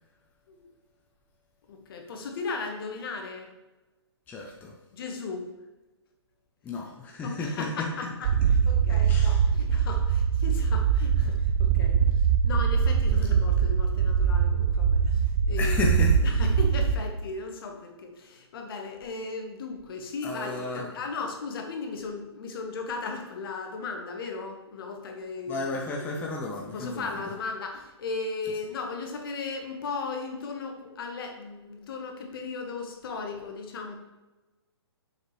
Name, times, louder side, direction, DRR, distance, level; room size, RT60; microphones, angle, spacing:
voice 1, 1.7-3.5 4.9-5.5 7.2-16.0 16.2-25.6 26.0-26.2 26.7-33.9, left 4 dB, 55° left, 3 dB, 1.2 m, -36 dB
voice 2, 4.3-4.7 6.6-8.1 9.1-9.5 15.6-16.4 20.2-20.9 25.5-27.3 28.4-28.5, left 3 dB, 10° left, -1 dB, 0.5 m, -33 dB
sound 1, 8.2-17.0, right 7 dB, 45° right, 0.4 m, -23 dB
6.4 x 4.8 x 3.1 m, 1.1 s
hypercardioid pair, 140°, 15 cm